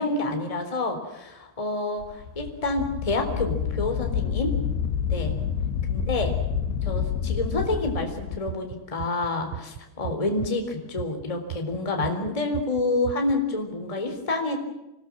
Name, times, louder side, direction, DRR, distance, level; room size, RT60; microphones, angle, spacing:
voice 1, 0.0-4.5 5.1-5.3 5.9-6.3 6.8-14.6, left 2 dB, 10° left, 5 dB, 3.0 m, -28 dB
Wind, 2.0-8.4, left 8 dB, 70° left, 2.9 m, -28 dB
sound 1, 5.7-7.7 7.9-11.8 12.0-13.4, right 12 dB, 90° right, 3.8 m, -36 dB
27.0 x 20.5 x 7.5 m, 0.93 s
omnidirectional pair, 5.8 m